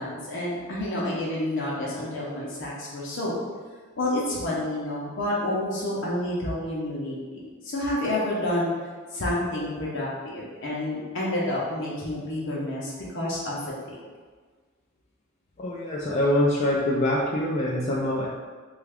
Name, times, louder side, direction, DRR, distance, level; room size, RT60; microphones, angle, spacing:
voice 1, 0.0-3.3 4.0-8.7 9.1-13.6 13.9-14.0, left 1 dB, 65° left, -5 dB, 0.7 m, -29 dB
voice 2, 15.6-18.3, left 1 dB, 35° left, -5 dB, 0.3 m, -24 dB
3.4 x 2.3 x 3.4 m, 1.5 s
head